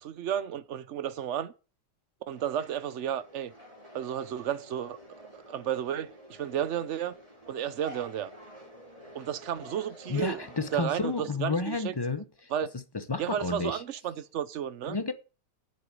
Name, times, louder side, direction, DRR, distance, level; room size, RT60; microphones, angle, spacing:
voice 1, 0.0-1.5 2.3-3.5 3.9-5.0 5.5-7.1 7.5-8.3 9.1-10.4 10.7-11.9 12.5-12.7 13.2-15.0, right 9 dB, 55° right, 1.0 m, -32 dB
sound 1, 2.3-11.2, left 1 dB, 20° right, 4.4 m, -50 dB
voice 2, 10.1-12.5 12.9-13.8 14.9-15.1, left 3 dB, 35° left, 0.3 m, -31 dB
8.1 x 6.9 x 7.5 m
omnidirectional pair, 1.8 m